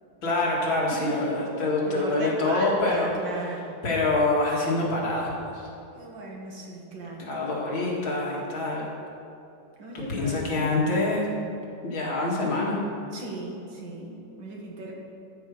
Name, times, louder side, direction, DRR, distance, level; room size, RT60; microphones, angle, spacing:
voice 1, 0.2-3.1 3.8-5.7 7.2-8.9 9.9-11.4 11.8-12.8, left 2 dB, 80° left, -3 dB, 2.7 m, -26 dB
voice 2, 0.9-1.4 1.8-3.6 5.9-7.3 9.8-10.7 13.1-14.9, right 2 dB, 65° right, -2 dB, 2.2 m, -36 dB
13.5 x 5.0 x 6.5 m, 2.7 s
omnidirectional pair, 2.2 m